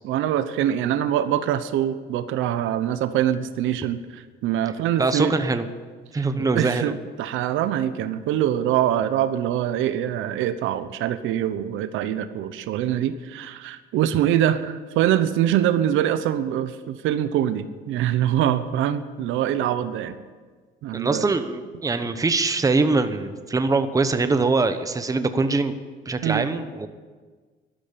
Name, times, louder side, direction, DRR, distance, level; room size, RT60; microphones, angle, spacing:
voice 1, 0.0-5.3 6.1-20.2 20.8-21.2 26.2-26.5, right 11 dB, 85° right, 12 dB, 0.9 m, -24 dB
voice 2, 5.0-5.7 6.1-7.0 20.9-25.8 26.1-26.9, right 3 dB, 15° right, 9 dB, 1.0 m, -23 dB
12.5 x 12.0 x 8.6 m, 1.5 s
cardioid pair, 125°, 20 cm